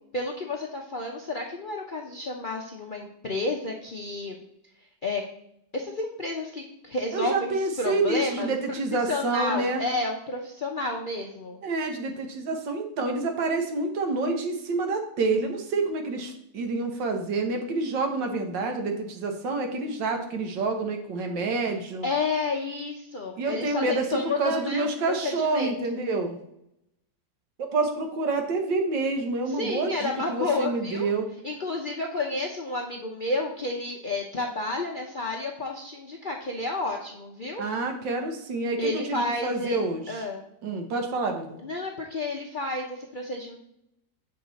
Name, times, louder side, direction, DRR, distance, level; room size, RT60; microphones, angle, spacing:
voice 1, 0.1-4.3 5.0-5.2 5.7-8.8 9.1-11.6 22.0-25.7 29.5-31.1 31.4-37.6 38.8-39.8 40.1-40.5 41.6-43.6, left 2 dB, 55° left, -1 dB, 0.5 m, -31 dB
voice 2, 7.1-9.8 11.6-22.0 23.4-26.4 27.6-31.3 37.6-40.2 40.6-41.6, right 3 dB, 85° right, 4 dB, 1.8 m, -28 dB
7.6 x 5.8 x 4.0 m, 0.79 s
omnidirectional pair, 1.9 m